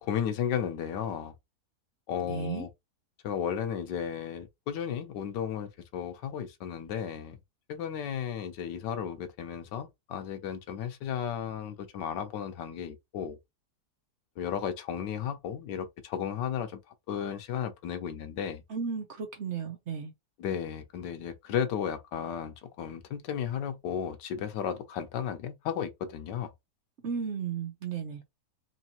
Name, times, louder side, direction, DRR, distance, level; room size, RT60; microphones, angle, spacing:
voice 1, 0.0-1.3 2.1-2.7 3.2-7.4 7.7-13.4 14.4-18.6 20.4-26.5, left 8 dB, 90° left, 1.4 m, -34 dB
voice 2, 2.2-2.7 18.7-20.1 27.0-28.2, right 6 dB, 55° right, 0.8 m, -34 dB
4.4 x 2.7 x 2.8 m
omnidirectional pair, 1.8 m